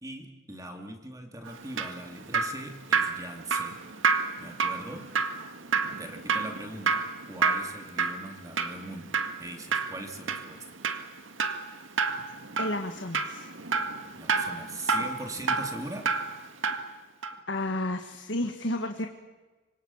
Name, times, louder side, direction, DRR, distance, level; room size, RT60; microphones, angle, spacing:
voice 1, 0.0-3.8 4.4-5.1 6.0-10.6 14.1-16.1, right 1 dB, 15° right, 4 dB, 2.6 m, -41 dB
Drip, 1.5-16.9 17.2-17.4, right 5 dB, 75° right, 1.9 m, -30 dB
voice 2, 12.6-13.5 17.5-19.1, left 1 dB, 65° left, 5 dB, 1.7 m, -31 dB
26.0 x 25.0 x 7.2 m, 1.2 s
head